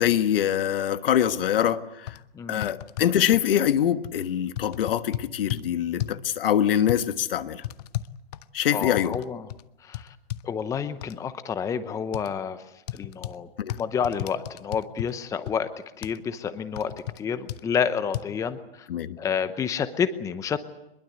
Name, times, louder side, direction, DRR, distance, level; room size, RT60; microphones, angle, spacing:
voice 1, 0.0-2.2 2.5-7.6 8.5-9.1 13.6-13.7 18.9-19.2, left 10 dB, 60° left, 11 dB, 1.5 m, -24 dB
sound 1, 1.6-1.7 2.1-2.2 2.6-3.5 4.0-4.2 4.6-5.6 6.0-6.3 6.9-7.0 7.6-9.2 9.5-9.6 9.9-10.4 11.0-11.1 12.1-12.3 12.9-13.4 13.7-15.1 15.5-15.6 16.0-16.2 16.8-17.2 17.5-17.6 18.1-18.2, left 14 dB, 40° left, 0.9 m, -33 dB
voice 2, 2.3-2.7 8.7-9.5 9.8-10.1 10.4-12.6 12.9-13.5 13.8-15.7 16.0-18.9 19.2-20.6, left 7 dB, 10° left, 12 dB, 0.8 m, -29 dB
24.5 x 22.0 x 8.1 m, 0.87 s
hypercardioid pair, 140°, 32 cm